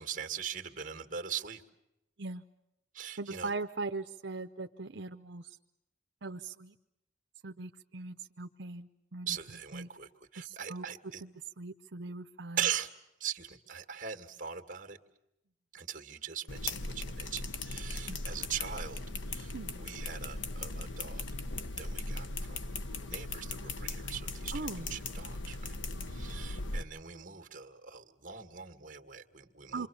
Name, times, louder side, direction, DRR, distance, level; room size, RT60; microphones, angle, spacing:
voice 1, 0.0-1.6 2.9-3.5 9.3-11.2 12.6-12.9 13.2-15.0 15.7-19.0 19.3-19.5 19.8-21.2 21.8-22.6 23.1-24.6 24.9-25.8 26.1-29.9, right 8 dB, 45° right, 6 dB, 2.1 m, -40 dB
voice 2, 3.2-5.6 6.2-6.8 7.4-9.4 9.7-9.9 10.3-10.8 11.2-12.7 18.0-18.2 19.5-19.7 24.5-24.9 29.7-29.9, right 3 dB, 75° right, 6 dB, 0.8 m, -40 dB
sound 1, 16.5-26.8, left 2 dB, 85° left, 1.1 m, -38 dB
27.5 x 24.5 x 7.1 m, 0.87 s
head